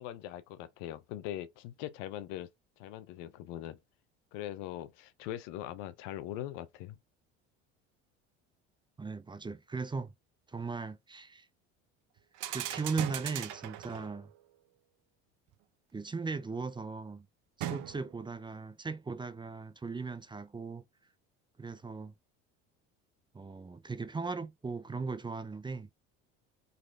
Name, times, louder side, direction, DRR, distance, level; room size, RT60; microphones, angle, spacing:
voice 1, 0.0-2.5 2.8-3.8 4.3-7.0, left 13 dB, 75° left, 0.7 m, -41 dB
voice 2, 9.0-10.1 10.5-11.5 12.5-14.3 15.9-17.2 17.6-20.8 21.6-22.1 23.3-25.9, right 4 dB, 15° right, 0.6 m, -38 dB
sound 1, 12.3-14.3 17.6-18.3, right 12 dB, 65° right, 0.9 m, -39 dB
4.1 x 3.1 x 3.6 m
supercardioid pair, 85°, 32 cm